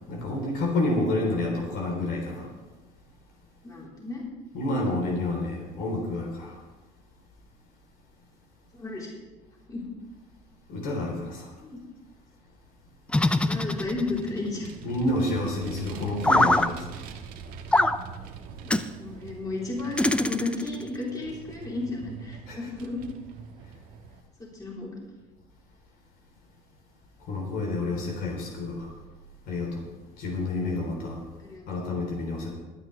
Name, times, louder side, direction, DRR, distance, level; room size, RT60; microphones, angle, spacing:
voice 1, 0.1-2.5 4.5-6.6 10.7-11.5 14.8-17.0 22.5-22.6 27.3-28.9 29.5-29.9 30.2-31.2 31.7-32.5, left 2 dB, 70° left, 0 dB, 3.8 m, -29 dB
voice 2, 3.6-4.2 8.7-9.1 9.7-9.8 11.6-11.8 13.1-14.7 18.6-23.0 24.5-24.9 31.4-31.8, left 3 dB, 25° left, -4 dB, 4.0 m, -34 dB
sound 1, 13.1-14.3 16.2-16.7 17.7-18.0 18.7-18.9 20.0-20.8, left 2 dB, 5° left, 0.5 m, -23 dB
Vehicle, 13.3-24.2, right 6 dB, 70° right, 1.4 m, -44 dB
22.5 x 9.1 x 3.4 m, 1.2 s
cardioid pair, 105°, 16 cm